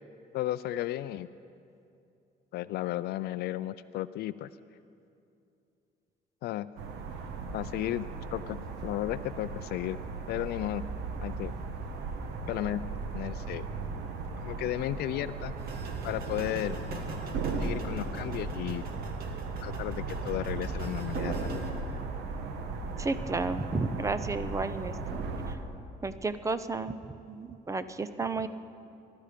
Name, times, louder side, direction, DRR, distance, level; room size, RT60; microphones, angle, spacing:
voice 1, 0.3-1.3 2.5-4.5 6.4-6.7 7.5-8.1 8.3-10.0 10.3-10.8 11.2-11.5 12.5-12.8 13.1-13.7 14.4-15.5 16.0-16.8 17.6-18.8 19.6-21.6, left 14 dB, 70° left, 15 dB, 0.4 m, -34 dB
sound 1, 6.8-25.6, right 4 dB, 85° right, 1.3 m, -36 dB
sound 2, 15.6-21.7, right 2 dB, 65° right, 2.1 m, -42 dB
voice 2, 23.0-25.2 25.5-25.6 26.0-27.0 27.3-28.5, right 3 dB, 20° right, 12 dB, 0.7 m, -32 dB
22.0 x 12.5 x 5.1 m, 2.6 s
cardioid pair, 110°, 17 cm